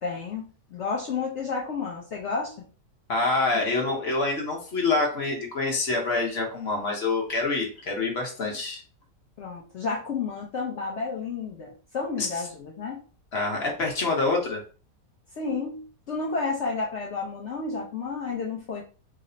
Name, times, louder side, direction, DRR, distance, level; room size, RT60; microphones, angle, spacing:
voice 1, 0.0-2.6 3.5-3.6 9.4-13.0 15.4-18.8, left 4 dB, 75° left, -1 dB, 0.6 m, -31 dB
voice 2, 3.1-8.8 12.2-12.3 13.3-14.6, left 3 dB, 45° left, 0 dB, 0.9 m, -26 dB
3.2 x 2.0 x 3.8 m, 0.38 s
omnidirectional pair, 1.9 m